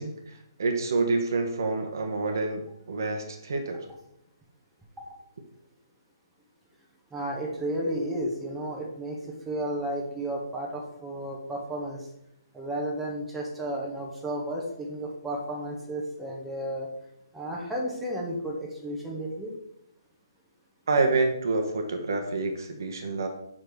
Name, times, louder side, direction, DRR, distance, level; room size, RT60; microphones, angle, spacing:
voice 1, 0.0-3.9 20.9-23.3, right 3 dB, 55° right, 4 dB, 1.1 m, -28 dB
voice 2, 7.1-12.0 12.5-16.9 17.3-19.5, right 1 dB, 5° right, -2 dB, 1.3 m, -33 dB
6.1 x 5.0 x 4.7 m, 0.78 s
figure-of-eight pair, 135°, 2 cm